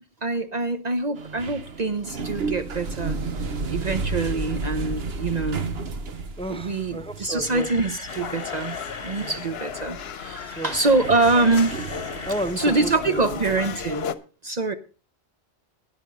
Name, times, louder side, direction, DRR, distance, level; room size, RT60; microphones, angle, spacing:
voice 1, 0.2-3.3 3.7-5.6 6.5-11.8 12.6-14.1 14.4-14.7, right 3 dB, 45° right, 10 dB, 0.8 m, -24 dB
sound 1, 1.2-13.9, right 3 dB, 65° right, 1.3 m, -33 dB
voice 2, 6.4-7.7 9.2-9.3 10.6-10.7 12.3-13.4, right 1 dB, 5° left, 11 dB, 0.8 m, -32 dB
Camera, 7.1-9.5 10.3-12.6 12.8-13.0 13.5-13.6, left 2 dB, 30° left, 1.4 m, -40 dB
sound 2, 8.1-14.1, left 7 dB, 70° left, 1.0 m, -35 dB
11.5 x 10.5 x 5.2 m, 0.35 s
omnidirectional pair, 1.1 m